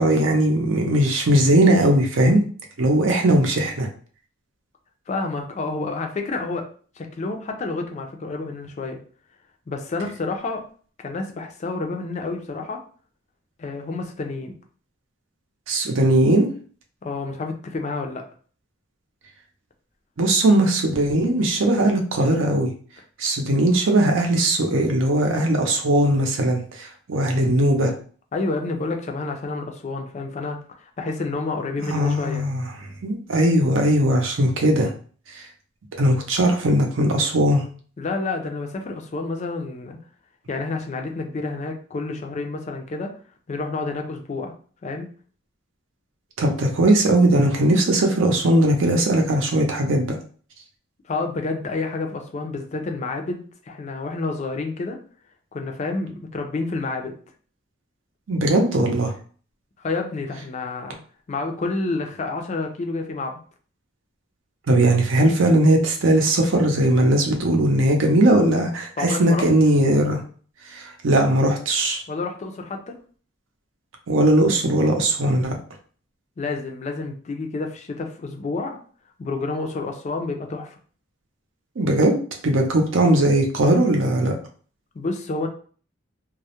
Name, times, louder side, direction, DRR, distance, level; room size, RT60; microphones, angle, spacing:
voice 1, 0.0-2.4 2.8-3.9 15.7-16.5 20.2-22.7 23.2-27.9 31.8-32.6 33.0-34.9 35.3-35.5 36.0-37.6 46.4-50.2 58.3-59.1 64.7-70.2 70.7-72.0 74.1-75.6 81.8-82.2 82.4-84.3, right 1 dB, 75° right, 2 dB, 0.6 m, -19 dB
voice 2, 5.1-6.7 7.0-9.0 9.7-10.6 11.0-12.8 13.6-14.6 17.0-18.2 28.3-30.6 31.0-32.4 38.0-40.0 40.5-43.1 43.5-44.5 44.8-45.1 51.1-55.0 55.5-57.1 59.8-61.0 61.3-63.4 69.0-69.5 72.1-72.9 76.4-78.8 79.2-80.8 84.9-85.5, left 3 dB, 35° left, 4 dB, 0.4 m, -29 dB
2.2 x 2.0 x 2.8 m, 0.43 s
head